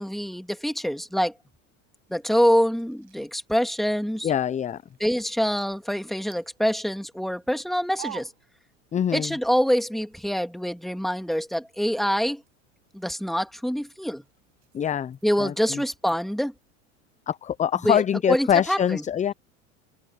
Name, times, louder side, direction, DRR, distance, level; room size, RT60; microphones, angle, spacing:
voice 1, 0.0-1.3 2.1-4.3 5.0-8.3 9.1-12.4 12.9-14.2 15.2-16.5 17.8-18.0 18.3-19.0, equal, ahead, 2.2 m, -25 dB
sound 1, 2.0-9.2 9.5-16.7, right 12 dB, 40° right, 7.9 m, -51 dB
voice 2, 4.2-4.8 8.9-9.3 14.7-15.8 17.3-19.3, left 9 dB, 20° left, 0.6 m, -24 dB
hypercardioid pair, 90°, 40 cm